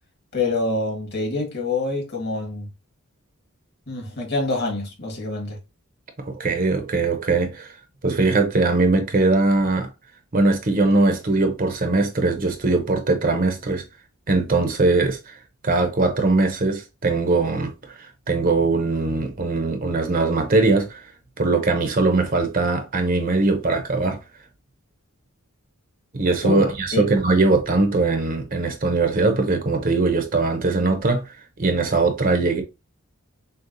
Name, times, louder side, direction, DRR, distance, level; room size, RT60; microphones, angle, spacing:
voice 1, 0.3-2.7 3.9-5.6 26.4-27.0, left 3 dB, 45° left, 1.6 m, -26 dB
voice 2, 6.2-7.7 8.0-9.9 10.3-13.8 14.3-15.3 15.6-21.0 21.4-24.2 26.1-31.2 31.6-32.6, right 3 dB, 40° right, 0.7 m, -21 dB
6.4 x 2.3 x 2.6 m
head